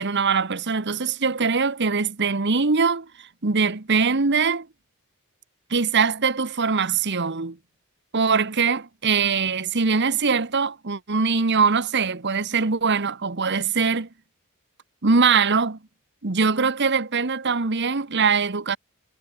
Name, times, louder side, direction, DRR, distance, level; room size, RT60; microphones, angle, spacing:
voice 1, 0.0-4.7 5.7-7.6 8.1-14.1 15.0-15.8 16.2-18.8, right 5 dB, 50° right, 1.2 m, -22 dB
head